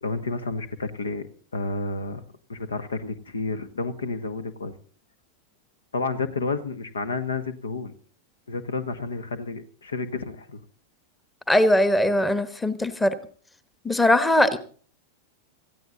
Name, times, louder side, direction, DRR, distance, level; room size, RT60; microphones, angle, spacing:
voice 1, 0.0-1.3 1.5-2.2 2.5-4.7 5.9-7.9 8.5-10.6, left 3 dB, 70° left, 14 dB, 1.3 m, -30 dB
voice 2, 11.5-13.2 13.8-14.6, left 1 dB, 10° left, 14 dB, 1.2 m, -20 dB
18.5 x 14.5 x 3.9 m, 0.44 s
figure-of-eight pair, 90°, 0 cm